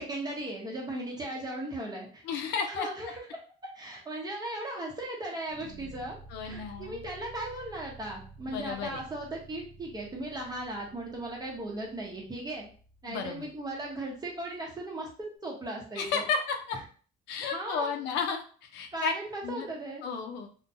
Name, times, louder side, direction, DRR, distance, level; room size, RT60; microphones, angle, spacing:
voice 1, 0.0-2.2 2.7-3.2 3.7-6.2 6.4-12.7 13.0-15.1 15.4-16.2 17.5-17.9 18.9-20.0, right 1 dB, 25° right, -2 dB, 0.9 m, -37 dB
voice 2, 2.2-2.9 6.3-7.0 8.5-9.0 13.1-13.5 16.0-16.8 17.3-19.1 19.4-19.7 20.0-20.5, left 6 dB, 85° left, 5 dB, 0.5 m, -33 dB
sound 1, 5.5-14.6, right 3 dB, 60° right, 0.5 m, -52 dB
2.2 x 2.2 x 2.8 m, 0.42 s
cardioid pair, 110°, 17 cm